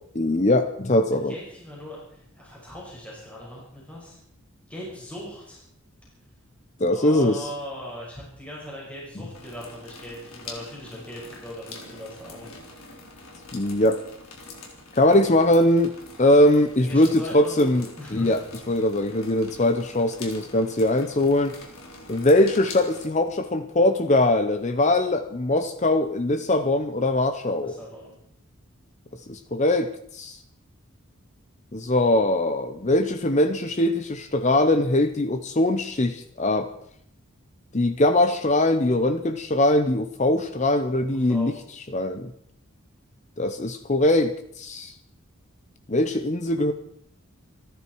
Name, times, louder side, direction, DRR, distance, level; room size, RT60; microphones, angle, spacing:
voice 1, 0.1-1.4 6.8-7.5 13.5-14.0 15.0-15.9 16.2-17.9 18.1-21.6 22.1-27.8 29.3-30.4 31.7-36.7 37.7-41.5 41.9-42.3 43.4-44.9 45.9-46.7, left 1 dB, 35° left, 9 dB, 0.7 m, -21 dB
voice 2, 1.3-4.2 4.7-5.6 6.9-13.2 16.8-18.4 27.5-28.1 41.1-41.5, equal, 5° left, -5 dB, 5.7 m, -40 dB
sound 1, 9.3-23.1, left 3 dB, 80° left, 3.7 m, -44 dB
28.0 x 10.5 x 4.6 m, 0.69 s
head